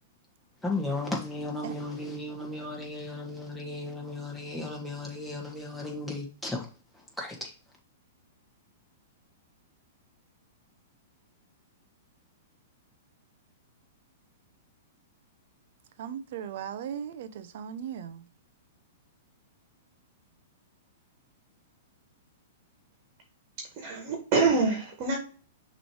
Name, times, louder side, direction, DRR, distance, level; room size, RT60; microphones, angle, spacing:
voice 1, 0.6-6.7 6.9-7.5, left 2 dB, ahead, 1.8 m, -35 dB
voice 2, 16.0-18.3, right 8 dB, 60° right, 0.7 m, -37 dB
voice 3, 23.8-25.2, right 4 dB, 40° right, 1.8 m, -25 dB
6.1 x 3.3 x 4.8 m
hypercardioid pair, 130°, 0 cm